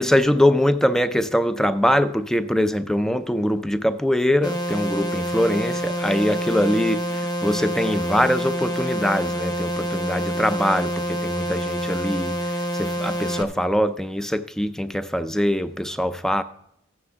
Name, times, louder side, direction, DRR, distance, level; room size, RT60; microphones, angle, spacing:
voice 1, 0.0-12.4 12.8-16.4, equal, ahead, 0.3 m, -22 dB
sound 1, 4.4-13.4, equal, 20° left, 1.0 m, -27 dB
15.5 x 9.6 x 3.5 m
head